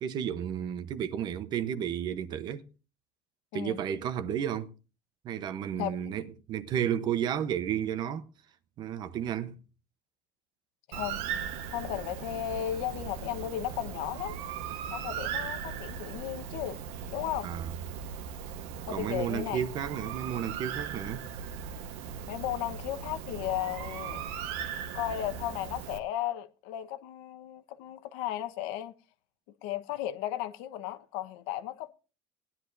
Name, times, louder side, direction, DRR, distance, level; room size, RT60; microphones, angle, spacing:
voice 1, 0.0-2.6 3.5-4.7 5.2-8.3 8.8-9.6 17.4-17.7 18.9-21.3, right 9 dB, 40° right, 0.9 m, -32 dB
voice 2, 5.8-6.1 10.9-11.2 11.7-14.4 14.9-16.8 17.1-17.5 18.8-19.6 22.3-24.2 24.9-28.9 29.6-31.9, left 12 dB, 80° left, 1.1 m, -35 dB
Bird, 10.9-26.0, right 7 dB, 75° right, 1.2 m, -38 dB
19.5 x 10.0 x 2.6 m
cardioid pair, 145°, 11 cm